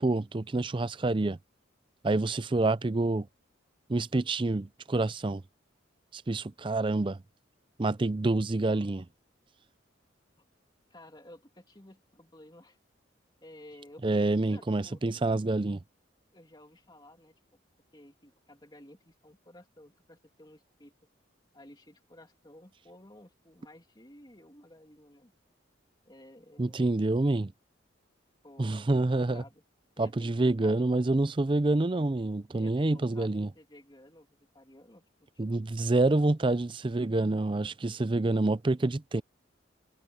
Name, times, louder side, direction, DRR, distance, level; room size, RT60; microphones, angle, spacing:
voice 1, 0.0-1.4 2.0-3.3 3.9-5.4 6.1-7.2 7.8-9.0 14.0-15.8 26.6-27.5 28.6-29.4 30.0-33.5 35.4-39.2, right 2 dB, 25° right, 0.5 m, -27 dB
voice 2, 10.9-12.8 13.4-15.0 16.3-17.3 17.9-20.9 21.5-25.3 26.0-26.9 28.4-28.8 29.2-29.6 30.0-30.8 32.5-36.1, left 1 dB, 20° left, 2.8 m, -54 dB
head